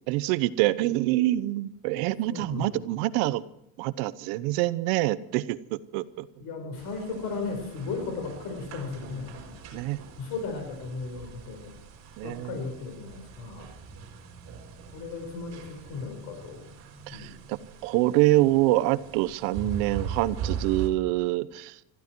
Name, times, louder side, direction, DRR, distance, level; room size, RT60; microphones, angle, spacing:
voice 1, 0.1-3.4 3.8-6.3 9.7-10.0 12.2-12.6 17.1-21.7, right 17 dB, 70° right, 15 dB, 1.0 m, -26 dB
voice 2, 2.3-2.8 6.4-9.8 10.2-11.7 12.2-13.7 14.9-16.6 17.1-17.3, left 4 dB, 60° left, 4 dB, 5.1 m, -36 dB
sound 1, 6.8-20.9, right 7 dB, 40° right, 4.2 m, -41 dB
20.5 x 14.5 x 4.7 m, 0.79 s
cardioid pair, 135°, 41 cm